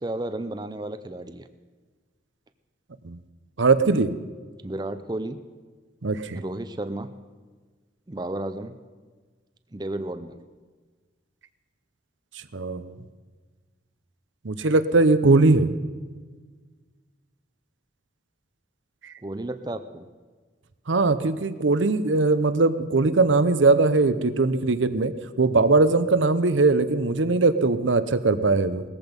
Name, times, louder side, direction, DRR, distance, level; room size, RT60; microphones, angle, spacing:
voice 1, 0.0-1.5 4.6-5.4 6.3-7.1 8.1-8.8 9.7-10.4 19.2-20.1, right 1 dB, 20° right, 10 dB, 0.5 m, -32 dB
voice 2, 3.6-4.1 6.0-6.4 12.5-12.9 14.4-15.7 20.9-28.8, right 3 dB, 85° right, 12 dB, 0.8 m, -20 dB
18.5 x 14.0 x 5.3 m, 1.4 s
head